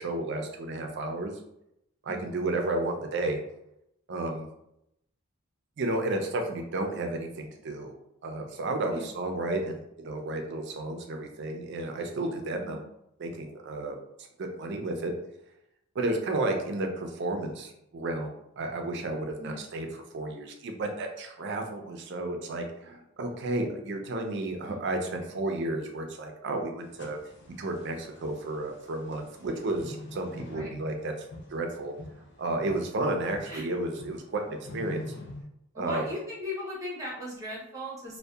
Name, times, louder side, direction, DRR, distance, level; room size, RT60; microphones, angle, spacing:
voice 1, 0.0-1.3 2.0-3.4 4.1-4.5 5.8-7.9 8.2-12.8 13.2-14.0 14.4-15.1 15.9-19.9 20.1-27.2 27.6-31.1 31.5-31.9 32.4-35.0 35.7-36.0, right 2 dB, 55° right, 3 dB, 0.4 m, -32 dB
voice 2, 2.1-2.4 8.9-9.1 12.5-12.9 19.4-19.6 24.6-24.8 30.5-30.8 33.5-33.6 35.7-38.2, left 1 dB, 15° right, -4 dB, 0.6 m, -38 dB
sound 1, 26.8-35.4, left 2 dB, 50° left, 0.4 m, -45 dB
2.6 x 2.1 x 2.2 m, 0.80 s
head